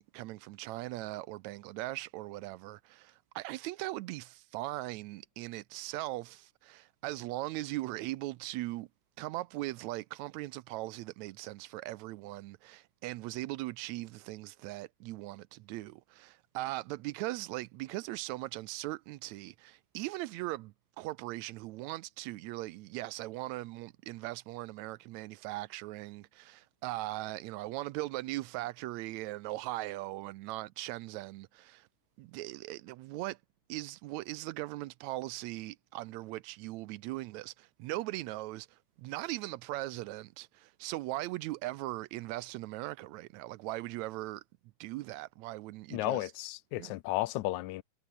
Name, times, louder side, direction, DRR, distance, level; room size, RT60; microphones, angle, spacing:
voice 1, 0.0-8.9 9.2-31.9 32.2-33.4 33.7-44.4 44.8-46.3 46.8-46.9, right 18 dB, 80° right, 1.9 m, -39 dB
voice 2, 45.9-47.8, left 18 dB, 85° left, 2.1 m, -33 dB
omnidirectional pair, 3.3 m